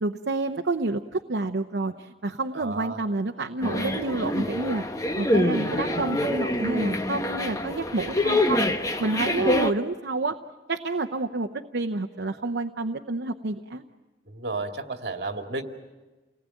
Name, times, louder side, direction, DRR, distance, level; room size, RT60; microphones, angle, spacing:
voice 1, 0.0-4.8 5.2-8.7 9.0-10.4 10.7-13.8, right 2 dB, 80° right, 5 dB, 0.8 m, -29 dB
voice 2, 2.5-3.0 14.3-15.6, right 3 dB, 65° right, 4 dB, 2.2 m, -32 dB
sound 1, 3.6-9.7, left 1 dB, 20° left, 1.1 m, -26 dB
29.0 x 19.5 x 9.1 m, 1.2 s
head